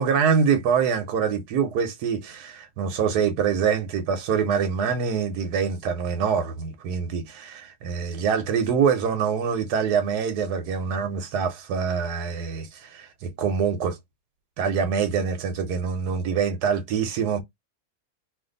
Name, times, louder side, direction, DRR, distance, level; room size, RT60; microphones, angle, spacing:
voice 1, 0.0-14.0 14.6-17.4, right 6 dB, 90° right, 1.3 m, -25 dB
3.0 x 2.6 x 3.8 m
omnidirectional pair, 1.7 m